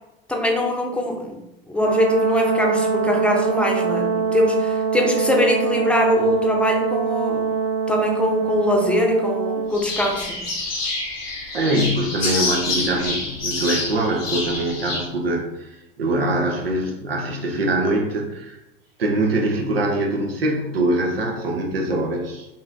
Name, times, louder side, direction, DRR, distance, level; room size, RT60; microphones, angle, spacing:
voice 1, 0.3-1.4 1.7-7.5 7.9-10.4, left 1 dB, 5° left, 1 dB, 0.7 m, -22 dB
Brass instrument, 1.8-9.8, right 5 dB, 45° right, 0.4 m, -23 dB
sound 1, 9.7-15.1, left 2 dB, 85° left, 1.2 m, -27 dB
voice 2, 11.5-18.6 19.0-22.5, right 1 dB, 80° right, 1 dB, 0.7 m, -23 dB
5.4 x 2.6 x 2.6 m, 0.95 s
figure-of-eight pair, 80°, 29 cm